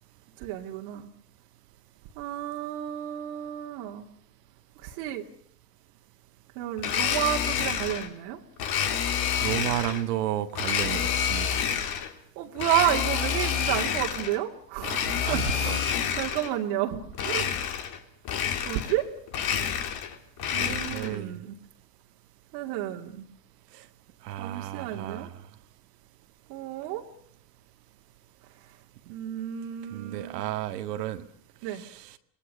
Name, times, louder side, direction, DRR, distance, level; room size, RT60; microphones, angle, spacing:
voice 1, 0.4-1.1 2.2-4.1 4.8-5.2 6.6-8.4 12.4-15.7 16.2-17.5 18.6-19.1 20.5-21.5 22.5-23.3 24.4-25.3 26.5-27.0 29.1-30.4 31.6-31.8, right 12 dB, 65° right, 1 dB, 2.6 m, -31 dB
Domestic sounds home sounds, 6.8-8.1 8.6-10.0 10.5-12.1 12.6-14.4 14.8-16.5 17.1-18.0 18.2-19.0 19.3-21.2, left 8 dB, 50° left, 3.2 m, -28 dB
voice 2, 9.4-11.6 15.2-15.8 20.6-21.4 23.7-23.8 24.2-25.4 29.1-29.2 29.9-31.3 31.7-32.2, right 12 dB, 85° right, 9 dB, 2.0 m, -33 dB
26.0 x 20.0 x 6.8 m, 0.64 s
supercardioid pair, 105°, 47 cm